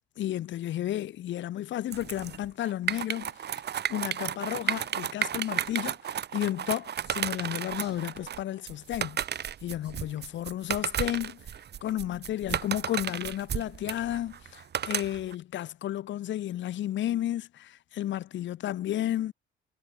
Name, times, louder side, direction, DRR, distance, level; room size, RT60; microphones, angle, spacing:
voice 1, 0.2-3.3 3.9-19.3, left 12 dB, 70° left, 0.9 m, -32 dB
sound 1, 1.9-15.3, right 9 dB, 60° right, 2.0 m, -33 dB
cardioid pair, 90°, 20 cm